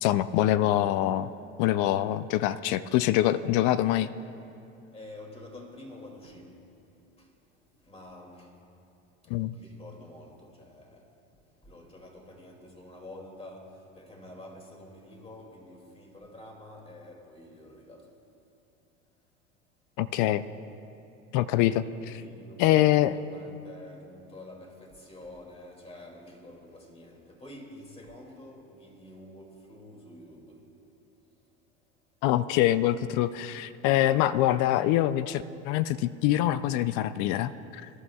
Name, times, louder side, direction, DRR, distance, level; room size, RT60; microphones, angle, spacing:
voice 1, 0.0-1.3 1.6-4.1 9.3-9.5 20.0-20.4 21.3-22.2 22.6-23.2 32.2-37.9, left 13 dB, 55° left, 15 dB, 0.5 m, -25 dB
voice 2, 4.9-6.6 7.2-8.7 9.2-11.2 11.6-18.1 22.0-30.7, left 1 dB, 15° left, 0 dB, 2.5 m, -48 dB
21.5 x 11.5 x 2.3 m, 2.7 s
hypercardioid pair, 95°, 37 cm